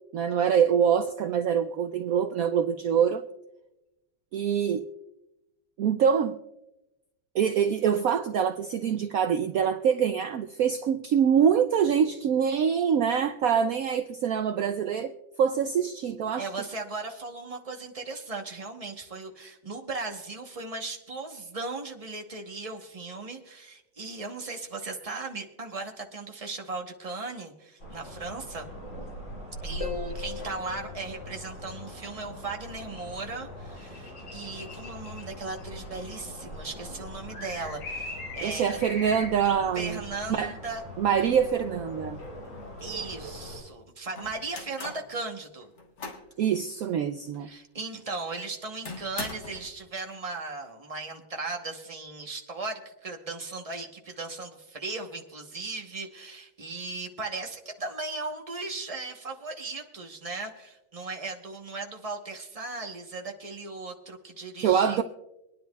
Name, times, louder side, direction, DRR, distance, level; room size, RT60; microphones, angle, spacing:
voice 1, 0.1-3.2 4.3-4.9 5.8-6.4 7.3-15.1 15.4-16.5 38.4-40.0 40.3-40.6 41.0-42.2 46.4-47.5 64.6-65.0, right 8 dB, 75° right, 0.8 m, -25 dB
voice 2, 16.4-28.7 29.6-38.8 39.7-40.8 42.8-45.7 47.4-65.0, right 3 dB, 30° right, 0.8 m, -37 dB
sound 1, 27.8-43.6, left 1 dB, 85° left, 6.5 m, -41 dB
Harp, 29.8-32.3 35.8-35.9, left 8 dB, 45° left, 0.4 m, -41 dB
sound 2, 42.0-42.1 42.5-43.2 44.2-45.1 45.6-46.3 46.8-46.9 47.3-47.4 48.9-49.7, left 3 dB, 65° left, 2.1 m, -41 dB
24.5 x 10.0 x 2.3 m
omnidirectional pair, 2.0 m